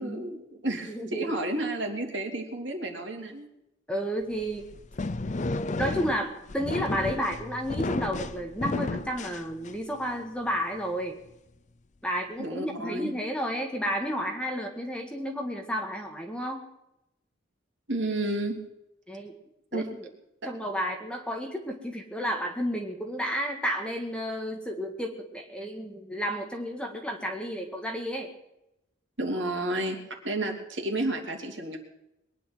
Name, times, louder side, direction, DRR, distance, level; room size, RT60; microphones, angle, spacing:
voice 1, 0.0-3.5 12.4-13.1 17.9-18.6 19.7-19.9 20.4-20.5 29.2-30.0 30.2-31.8, right 1 dB, 65° right, 2 dB, 3.1 m, -31 dB
voice 2, 0.9-1.4 3.9-4.7 5.7-11.2 12.0-16.6 19.1-19.3 19.7-20.1 20.4-28.3, equal, 5° left, 2 dB, 1.8 m, -32 dB
sound 1, 4.4-10.0, left 2 dB, 35° left, 0.6 m, -33 dB
22.0 x 10.0 x 6.2 m, 0.86 s
head